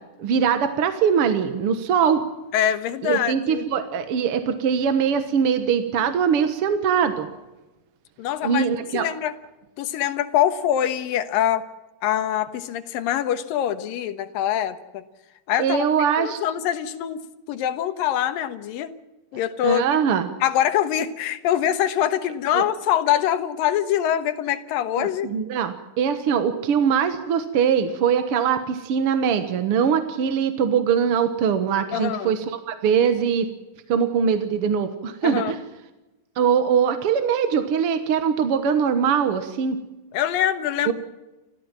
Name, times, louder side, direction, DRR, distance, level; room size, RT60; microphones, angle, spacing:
voice 1, 0.2-2.2 3.0-7.3 8.4-9.1 15.6-16.4 19.6-20.3 22.5-22.6 25.0-33.5 33.9-35.6 36.4-39.8 40.9-41.0, right 7 dB, 60° right, 9 dB, 1.7 m, -22 dB
voice 2, 2.5-3.6 8.2-8.7 8.9-9.3 9.8-11.6 12.0-15.0 15.5-15.8 16.2-18.9 19.3-19.8 20.4-25.3 31.9-32.4 35.2-35.5 40.1-40.9, left 11 dB, 85° left, 11 dB, 2.9 m, -24 dB
28.5 x 14.5 x 7.5 m, 1.1 s
omnidirectional pair, 3.9 m